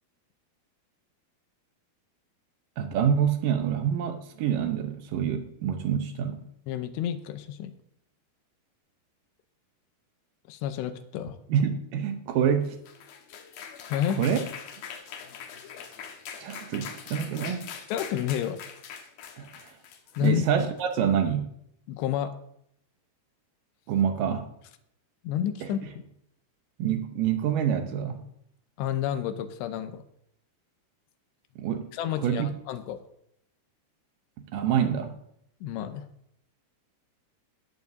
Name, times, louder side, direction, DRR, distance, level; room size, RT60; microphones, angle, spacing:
voice 1, 2.8-6.5 11.5-12.8 14.2-14.4 16.4-17.7 19.4-19.7 20.2-21.5 23.9-24.5 26.8-28.2 31.6-31.9 32.2-32.5 34.5-35.1, right 8 dB, 75° right, 7 dB, 2.1 m, -26 dB
voice 2, 6.7-7.7 10.5-11.4 13.9-14.2 17.9-18.6 20.2-20.4 21.9-22.3 25.2-25.8 28.8-30.0 31.9-33.0 35.6-36.1, left 10 dB, 90° left, 9 dB, 2.9 m, -30 dB
sound 1, 12.6-20.9, left 7 dB, 70° left, 2.3 m, -42 dB
14.5 x 10.5 x 2.7 m, 0.73 s
omnidirectional pair, 4.9 m